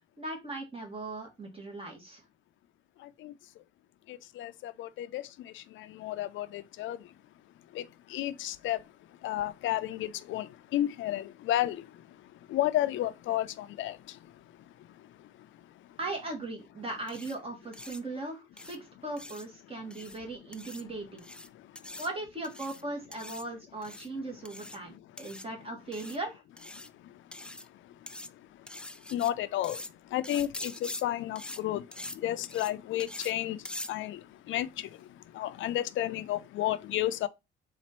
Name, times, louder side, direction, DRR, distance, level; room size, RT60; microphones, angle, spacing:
voice 1, 0.2-2.2 16.0-21.2 22.0-26.4, right 2 dB, 30° right, 1.4 m, -38 dB
voice 2, 3.0-3.6 4.1-16.0 19.7-19.8 20.8-20.9 21.5-22.0 24.8-25.3 26.8-37.3, left 13 dB, 75° left, 0.4 m, -34 dB
sound 1, 17.1-17.3 17.7-18.0 18.6-18.8 19.2-19.4 19.9-20.2 20.5-20.8 21.2-21.5 21.7-22.1 22.4-22.8 23.1-23.4 23.8-24.1 24.4-24.8 25.2-25.4 25.9-26.2 26.6-26.9 27.3-27.7 28.1-28.3 28.7-29.3 29.6-29.9 30.2-31.0 31.3-31.6 31.9-32.2 32.4-32.7 33.0-33.3 33.6-33.9, left 1 dB, 5° left, 0.3 m, -43 dB
4.2 x 2.5 x 4.2 m
cardioid pair, 90°, 20 cm